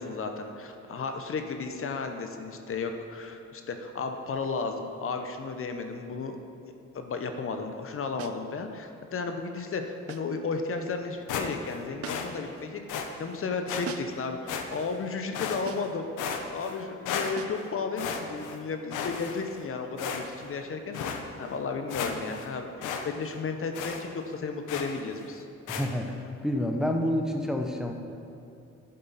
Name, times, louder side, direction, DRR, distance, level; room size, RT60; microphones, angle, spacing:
voice 1, 0.0-6.4 6.9-16.1 16.5-25.4, left 4 dB, 45° left, 6 dB, 0.8 m, -34 dB
sound 1, 8.2-8.5 10.1-10.4 12.0-12.5 13.8-14.3 15.7-16.0 17.4-17.7, right 8 dB, 50° right, 0.6 m, -41 dB
sound 2, 11.3-11.8 12.1-12.3 12.9-13.1 13.7-13.9 14.5-14.9 15.3-15.9 16.2-16.8 17.1-17.6 18.0-18.6 18.9-19.6 20.0-20.5 20.9-21.2 21.6-21.7 21.9-22.5 22.8-23.0 23.3-23.4 23.7-24.0 24.7-25.0 25.7-25.9, left 6 dB, 90° left, 0.8 m, -34 dB
voice 2, 25.7-27.9, left 1 dB, ahead, 3 dB, 0.7 m, -28 dB
11.0 x 7.6 x 4.1 m, 2.6 s
cardioid pair, 90°, 30 cm